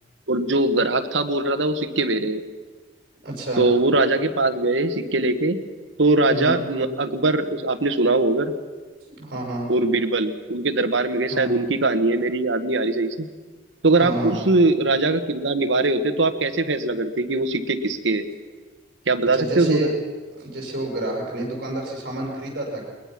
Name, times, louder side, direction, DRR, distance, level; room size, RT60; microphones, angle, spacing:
voice 1, 0.3-2.4 3.6-5.6 6.0-8.5 9.7-13.3 13.8-18.2 19.1-19.9, right 2 dB, 80° right, 8 dB, 1.4 m, -21 dB
voice 2, 3.2-3.6 6.3-6.6 9.2-9.7 11.3-11.5 14.0-14.4 19.3-19.9 20.4-22.8, right 1 dB, 55° right, -1 dB, 6.1 m, -28 dB
21.5 x 20.5 x 6.0 m, 1.4 s
head